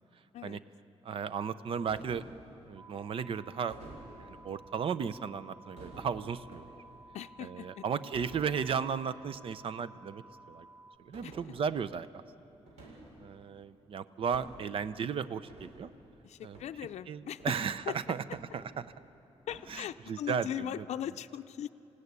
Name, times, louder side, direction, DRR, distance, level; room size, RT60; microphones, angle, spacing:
voice 1, 1.0-2.2 2.7-3.8 4.2-6.6 7.4-10.2 10.5-10.7 11.0-12.2 13.2-15.9 16.4-16.6 17.1-18.2 18.5-18.9 19.7-20.8, right 7 dB, 50° right, 14 dB, 0.6 m, -35 dB
sound 1, 1.9-2.4 3.7-4.4 5.8-7.0 8.1-8.5 8.9-9.2 9.4-9.5 10.0-10.2 11.1-11.5 12.7-13.2 14.2-14.7 15.5-15.8 16.5-16.7 17.4-17.8 18.3-19.0 19.5-19.7, right 2 dB, 85° right, 7.4 m, -51 dB
sound 2, 2.8-11.0, right 2 dB, 35° right, 1.7 m, -55 dB
voice 2, 7.1-7.8 11.2-11.3 16.2-17.4 17.9-18.0 19.5-21.7, left 10 dB, 75° left, 9 dB, 0.5 m, -39 dB
27.5 x 16.5 x 9.6 m, 3.0 s
wide cardioid pair, 155°, 11 cm